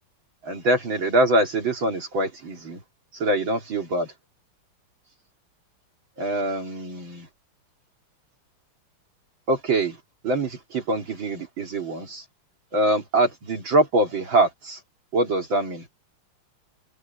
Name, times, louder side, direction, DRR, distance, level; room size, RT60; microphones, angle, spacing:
voice 1, 0.4-2.8 3.1-4.1 6.2-7.3 9.5-10.0 10.2-12.2 12.7-14.8 15.1-15.8, right 2 dB, 60° right, 3.4 m, -24 dB
omnidirectional pair, 2.4 m